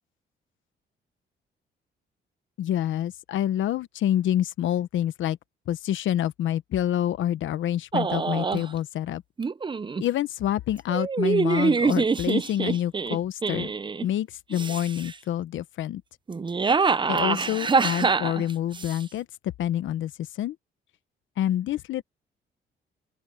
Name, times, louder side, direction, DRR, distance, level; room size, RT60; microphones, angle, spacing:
voice 1, 2.6-5.4 5.7-9.2 10.0-13.7 14.0-16.0 17.1-19.3 19.6-20.6 21.4-22.0, left 11 dB, 75° left, 1.1 m, -27 dB
sound 1, 7.9-8.7 9.4-10.0 10.9-14.1 14.5-15.1 16.3-19.0, right 4 dB, 25° right, 0.7 m, -25 dB
open air
cardioid pair, 90°, 20 cm